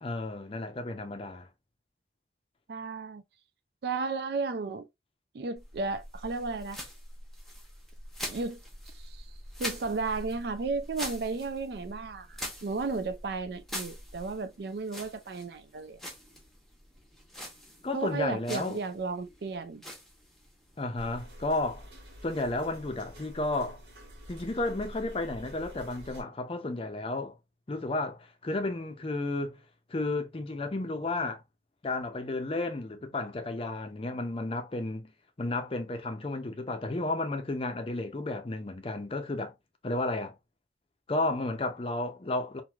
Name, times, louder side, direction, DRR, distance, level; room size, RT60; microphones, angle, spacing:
voice 1, 0.0-1.5 17.8-18.8 20.8-21.9 22.2-23.8 24.3-27.4 27.7-29.6 29.9-31.4 31.8-35.1 35.4-39.5 39.8-40.3 41.1-42.6, left 2 dB, 30° left, 0.5 m, -32 dB
voice 2, 2.7-3.2 3.8-4.9 5.3-6.8 8.3-9.3 9.6-16.0 17.9-19.8, right 4 dB, 60° right, 0.4 m, -34 dB
sound 1, 5.6-22.8, equal, ahead, 0.8 m, -44 dB
sound 2, 21.0-26.2, equal, 85° right, 1.4 m, -47 dB
3.1 x 2.5 x 2.3 m
head